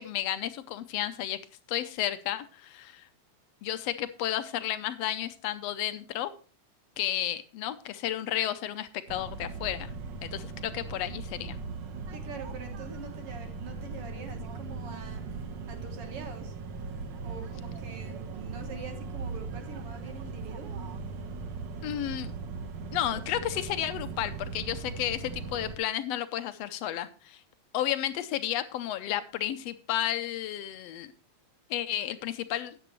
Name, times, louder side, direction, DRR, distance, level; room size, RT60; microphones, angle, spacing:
voice 1, 0.0-1.4 1.7-3.1 3.6-6.3 7.0-9.9 10.2-11.6 21.8-22.3 22.9-27.4 27.7-31.1 31.7-32.7, left 12 dB, 75° left, 12 dB, 1.6 m, -32 dB
sound 1, 9.1-25.8, right 4 dB, 75° right, 1.0 m, -39 dB
voice 2, 12.1-16.5 17.2-20.8, right 5 dB, 55° right, 5 dB, 2.0 m, -45 dB
13.0 x 9.1 x 3.1 m, 0.37 s
omnidirectional pair, 3.3 m